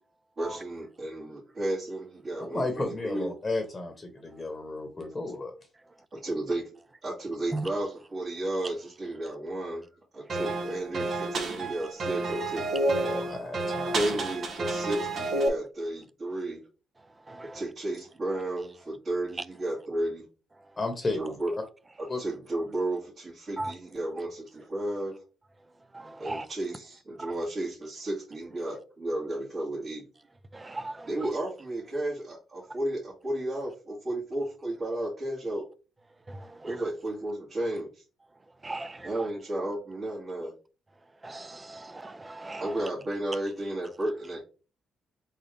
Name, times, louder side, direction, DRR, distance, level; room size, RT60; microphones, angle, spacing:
voice 1, 0.4-2.6 3.0-3.3 6.2-6.6 7.0-9.9 10.1-12.7 13.9-16.7 17.5-20.3 21.1-21.5 22.0-25.2 26.2-30.0 31.1-35.7 36.6-38.0 39.0-40.5 42.6-44.4, right 1 dB, 40° right, 2.4 m, -33 dB
voice 2, 2.5-5.5 13.0-14.2 20.8-21.4 22.1-22.2, left 2 dB, 20° left, 1.1 m, -33 dB
sound 1, 10.3-15.5, right 2 dB, 60° right, 1.2 m, -30 dB
voice 3, 17.0-17.6 19.4-19.5 20.6-20.7 23.6-23.8 25.9-26.5 27.2-27.3 30.5-31.3 36.3-36.8 38.6-39.3 41.2-42.9, right 2 dB, 20° right, 0.5 m, -38 dB
4.0 x 3.9 x 3.4 m
cardioid pair, 90°, 0 cm